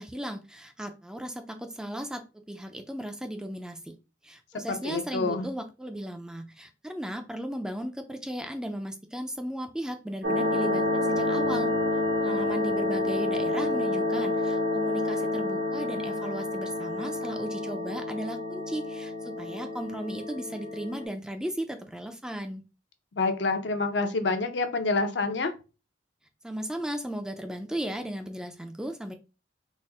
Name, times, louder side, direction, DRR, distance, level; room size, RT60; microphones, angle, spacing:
voice 1, 0.0-4.0 4.2-11.7 12.2-22.6 26.4-29.1, right 1 dB, 5° right, 6 dB, 0.3 m, -36 dB
voice 2, 4.7-5.5 23.1-25.5, left 3 dB, 70° left, 7 dB, 0.6 m, -27 dB
sound 1, 10.2-21.1, left 2 dB, 85° right, 1.2 m, -29 dB
4.1 x 2.0 x 3.5 m, 0.31 s
head